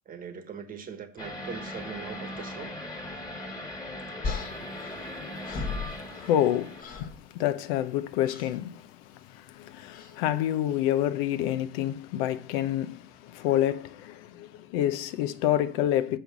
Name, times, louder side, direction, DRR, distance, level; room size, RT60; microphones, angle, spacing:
voice 1, 0.1-2.7, right 6 dB, 30° right, 1.2 m, -41 dB
sound 1, 1.2-6.8, left 1 dB, 10° left, 1.6 m, -39 dB
sound 2, 4.2-6.5 6.8-7.2 8.2-8.6 9.9-10.2, left 4 dB, 30° left, 1.2 m, -36 dB
voice 2, 5.9-16.2, left 12 dB, 70° left, 0.8 m, -28 dB
7.1 x 5.7 x 5.9 m
supercardioid pair, 140°, 30 cm